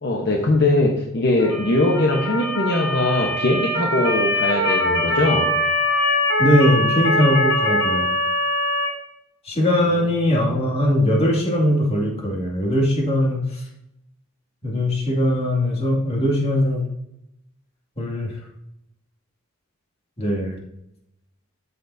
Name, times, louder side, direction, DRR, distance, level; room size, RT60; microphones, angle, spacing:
voice 1, 0.0-5.5 9.9-10.1, left 2 dB, 55° left, 0 dB, 1.1 m, -21 dB
Motor vehicle (road) / Siren, 1.4-8.9, left 1 dB, 70° left, 3.6 m, -22 dB
voice 2, 6.4-8.1 9.4-13.6 14.6-16.8 18.0-18.3 20.2-20.5, left 1 dB, 30° left, -2 dB, 2.4 m, -20 dB
13.0 x 7.0 x 2.7 m, 0.81 s
head